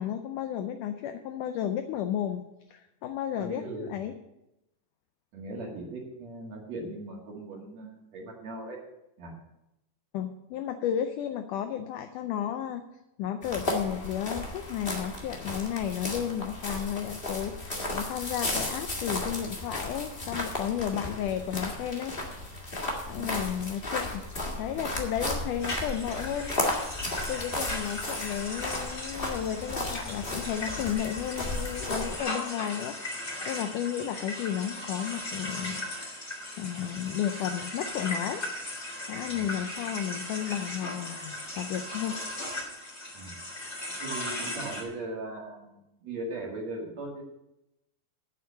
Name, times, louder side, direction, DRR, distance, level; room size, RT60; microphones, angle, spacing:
voice 1, 0.0-4.1 10.1-12.8 13.2-22.2 23.1-24.2 24.6-26.5 27.3-33.0 33.5-38.4 39.1-42.2, left 10 dB, 90° left, 8 dB, 1.8 m, -33 dB
voice 2, 3.4-3.9 5.3-8.8 9.2-9.3 23.1-23.4 27.7-27.8 39.3-39.5 43.1-43.4 44.0-47.2, right 2 dB, 50° right, -1 dB, 2.8 m, -39 dB
sound 1, 13.4-32.2, left 2 dB, 40° left, 0.7 m, -34 dB
sound 2, 25.6-44.8, left 1 dB, 20° left, 2.4 m, -37 dB
8.5 x 7.6 x 8.5 m, 0.91 s
omnidirectional pair, 4.4 m